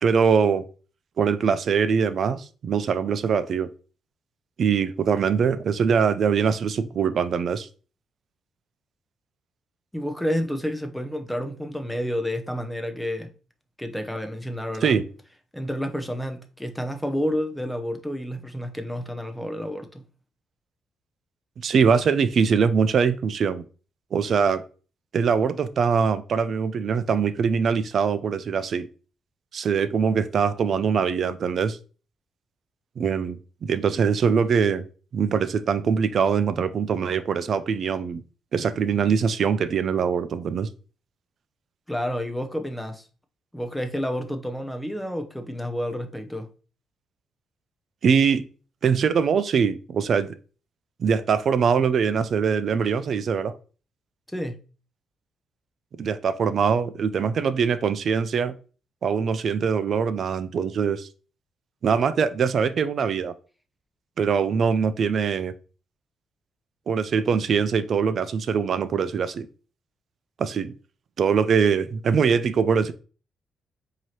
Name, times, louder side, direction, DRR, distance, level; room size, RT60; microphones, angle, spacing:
voice 1, 0.0-0.6 1.2-3.7 4.6-7.7 14.8-15.0 21.6-23.6 24.1-24.6 25.1-28.9 29.5-31.8 33.0-34.8 35.1-38.2 38.5-40.7 48.0-48.5 48.8-50.3 51.0-53.5 56.0-58.5 59.0-61.1 61.8-63.3 64.2-65.5 66.9-69.5 70.4-70.7 71.2-72.9, right 6 dB, 55° right, 0.4 m, -22 dB
voice 2, 9.9-13.3 13.8-15.0 15.5-20.0 41.9-43.1 43.5-46.5 54.3-54.6, equal, 5° left, 0.6 m, -30 dB
4.6 x 2.8 x 2.9 m
cardioid pair, 90°, 0 cm